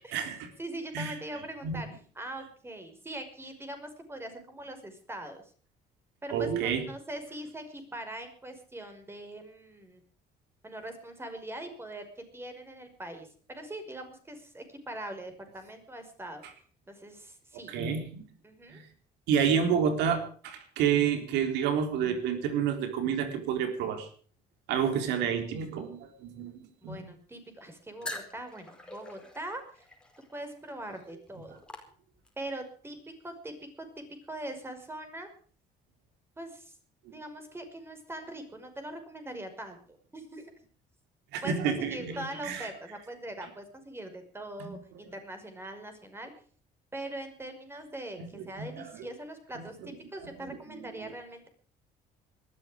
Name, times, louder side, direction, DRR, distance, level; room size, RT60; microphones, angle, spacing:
voice 1, 0.0-0.5 0.9-1.2 1.6-1.8 6.3-6.8 17.7-18.2 18.7-18.8 19.3-24.1 24.7-27.1 37.1-37.2 41.3-42.7 44.7-44.8 48.2-49.0 49.6-49.7 50.2-50.3, right 7 dB, 90° right, 7 dB, 3.8 m, -29 dB
voice 2, 0.6-1.9 2.2-5.5 6.2-10.0 10.6-16.4 16.9-17.8 18.4-18.8 24.9-25.0 26.8-29.9 30.3-31.6 32.4-33.0 33.2-35.3 36.4-36.8 37.1-39.8 40.1-40.5 41.4-46.3 46.9-51.5, right 1 dB, 15° right, 7 dB, 5.5 m, -42 dB
sound 1, 28.0-32.5, left 1 dB, 5° left, 4.8 m, -45 dB
20.0 x 13.5 x 5.0 m, 0.44 s
cardioid pair, 110°, 17 cm